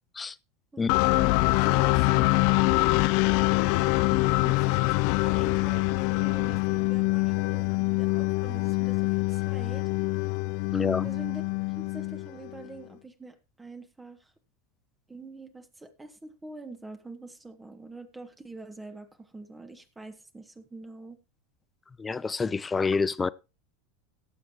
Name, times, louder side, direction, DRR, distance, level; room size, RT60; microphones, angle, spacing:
voice 1, 0.7-3.1 3.9-9.9 11.0-11.4 11.7-14.3 15.1-21.2, right 3 dB, 15° right, 1.6 m, -45 dB
sound 1, 0.9-12.7, left 22 dB, 60° left, 0.5 m, -25 dB
voice 2, 10.7-11.1 22.0-23.3, left 4 dB, 20° left, 0.6 m, -27 dB
18.0 x 7.2 x 3.0 m
hypercardioid pair, 95°, 0 cm